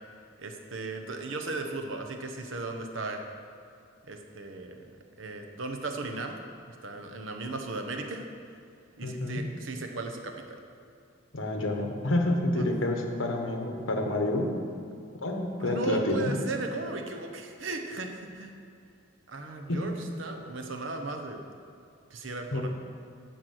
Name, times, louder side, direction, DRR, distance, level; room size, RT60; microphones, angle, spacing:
voice 1, 0.4-3.2 4.1-4.9 5.2-6.4 6.8-8.3 9.0-10.6 12.6-12.7 15.6-18.5 19.3-19.9 20.2-21.4 22.1-22.7, right 3 dB, 75° right, 4 dB, 1.0 m, -36 dB
voice 2, 9.0-9.4 11.3-14.5 15.2-16.3 19.7-19.8 22.5-22.6, left 1 dB, 80° left, 3 dB, 1.2 m, -28 dB
11.0 x 4.7 x 7.7 m, 2.4 s
head